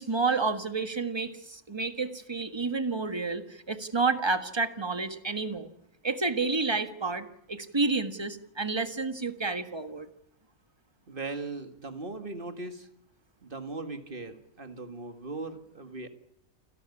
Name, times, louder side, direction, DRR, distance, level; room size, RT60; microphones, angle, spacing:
voice 1, 0.0-5.7 6.0-10.1, right 4 dB, 20° right, 9 dB, 1.5 m, -30 dB
voice 2, 11.1-12.9 13.4-16.1, right 3 dB, 40° right, 8 dB, 2.1 m, -39 dB
29.0 x 13.0 x 9.8 m, 0.78 s
omnidirectional pair, 1.5 m